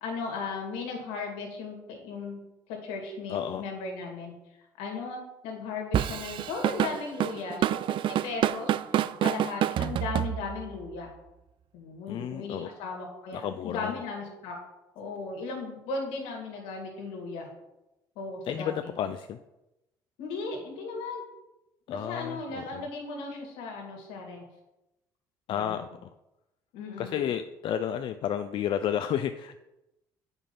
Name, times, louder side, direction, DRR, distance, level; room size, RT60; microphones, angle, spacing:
voice 1, 0.0-2.4 2.7-4.3 4.8-11.1 11.7-14.6 15.0-17.5 18.2-18.9 20.2-21.2 21.9-24.4 25.5-25.9 26.7-27.2, left 4 dB, 85° left, 1 dB, 2.2 m, -37 dB
voice 2, 3.3-3.6 12.1-12.7 13.3-13.9 18.5-19.4 21.9-22.9 25.5-26.1 27.0-29.6, left 9 dB, 60° left, 9 dB, 0.5 m, -32 dB
Drum kit / Drum, 5.9-10.8, right 11 dB, 60° right, 0.4 m, -27 dB
8.2 x 5.4 x 5.4 m, 0.93 s
supercardioid pair, 65°, 10 cm